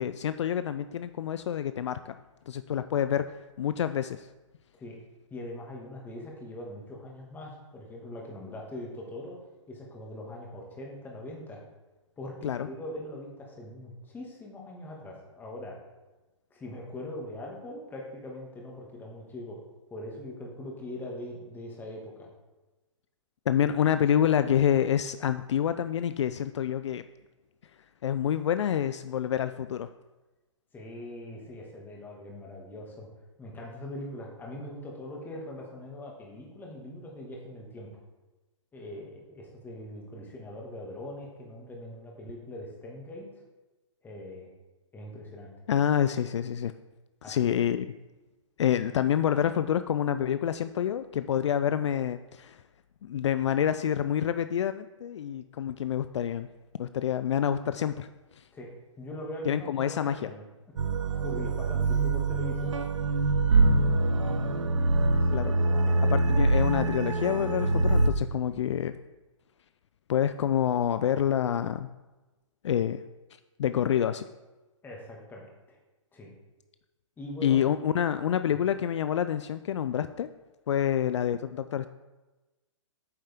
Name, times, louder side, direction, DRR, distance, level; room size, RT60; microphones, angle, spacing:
voice 1, 0.0-2.1 2.5-3.3 3.6-4.3 12.4-12.7 23.5-27.0 28.0-29.9 45.7-46.7 47.3-47.9 48.6-52.6 53.0-56.5 56.8-58.1 58.4-58.5 59.5-60.3 65.3-65.5 66.0-68.9 70.1-71.9 72.6-73.0 73.6-74.3 77.4-80.3 80.7-81.9, left 9 dB, 60° left, 11 dB, 0.4 m, -27 dB
voice 2, 5.3-9.4 9.7-11.6 12.2-15.8 16.5-19.6 19.9-22.3 30.7-33.1 33.4-37.9 38.7-43.3 44.0-44.5 44.9-45.5 47.2-47.4 58.5-58.7 59.0-60.4 61.2-62.8 65.2-65.6 65.8-66.4 74.8-75.4 75.7-75.8 76.1-76.3 77.2-77.6 78.5-78.6, left 1 dB, 10° left, -1 dB, 2.1 m, -41 dB
sound 1, 60.8-68.1, right 2 dB, 70° right, 0.9 m, -24 dB
8.9 x 7.4 x 3.7 m, 1.1 s
hypercardioid pair, 130°, 17 cm